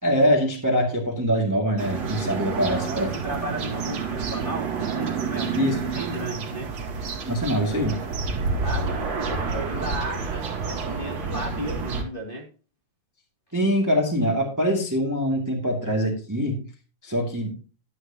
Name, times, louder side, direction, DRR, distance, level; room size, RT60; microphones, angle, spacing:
voice 1, 0.0-3.2 5.5-5.8 7.2-8.0 13.5-16.6 17.0-17.6, equal, 5° right, 0 dB, 1.6 m, -23 dB
sound 1, 1.8-12.0, right 5 dB, 50° right, 3.0 m, -29 dB
voice 2, 2.7-6.8 8.6-12.4, right 1 dB, 15° left, -3 dB, 2.3 m, -34 dB
11.5 x 11.5 x 2.9 m, 0.35 s
omnidirectional pair, 3.9 m